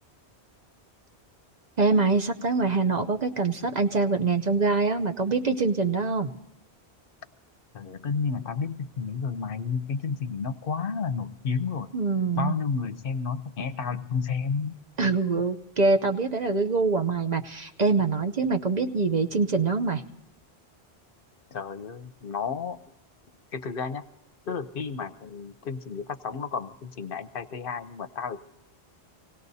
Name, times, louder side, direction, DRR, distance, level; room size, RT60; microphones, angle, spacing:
voice 1, 1.8-6.3 11.9-12.6 15.0-20.0, right 4 dB, 45° right, 5 dB, 0.7 m, -24 dB
voice 2, 7.7-11.9 12.4-14.8 21.5-22.8 23.5-24.1 24.5-28.4, left 5 dB, 60° left, 11 dB, 0.8 m, -31 dB
25.5 x 18.0 x 2.7 m, 0.90 s
omnidirectional pair, 1.1 m